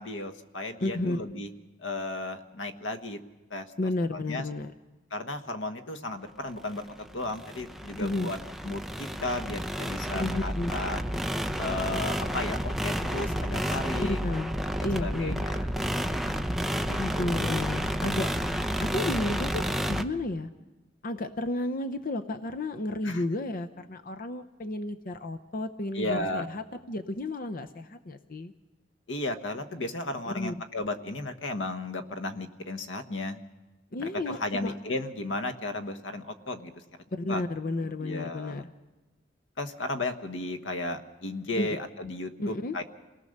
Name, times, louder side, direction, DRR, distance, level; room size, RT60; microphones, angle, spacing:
voice 1, 0.0-1.5 1.8-3.2 3.5-3.7 4.1-4.4 5.1-6.9 7.1-8.4 8.6-11.0 11.6-14.2 15.0-15.7 16.8-17.6 23.0-23.2 25.9-26.5 29.1-33.4 34.0-36.7 37.3-37.4 38.0-38.6 39.6-42.8, left 2 dB, 80° left, 7 dB, 1.3 m, -34 dB
voice 2, 0.8-1.2 3.8-4.7 8.0-8.3 10.2-10.7 14.1-14.5 14.8-15.4 17.0-18.3 18.8-20.5 21.0-28.5 30.3-30.5 33.9-34.7 37.1-38.6 41.6-41.8 42.4-42.8, left 2 dB, 50° left, 7 dB, 0.7 m, -32 dB
sound 1, 6.7-20.0, equal, ahead, 0.7 m, -31 dB
28.5 x 18.5 x 6.6 m, 1.2 s
head